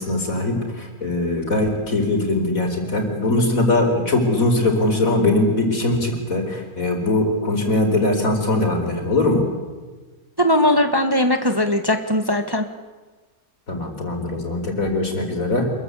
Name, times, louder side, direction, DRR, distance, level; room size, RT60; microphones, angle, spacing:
voice 1, 0.0-9.4 13.7-15.7, left 2 dB, 65° left, 4 dB, 4.9 m, -21 dB
voice 2, 10.4-12.6, left 1 dB, 15° right, 6 dB, 1.6 m, -19 dB
27.5 x 22.0 x 8.4 m, 1.3 s
omnidirectional pair, 1.5 m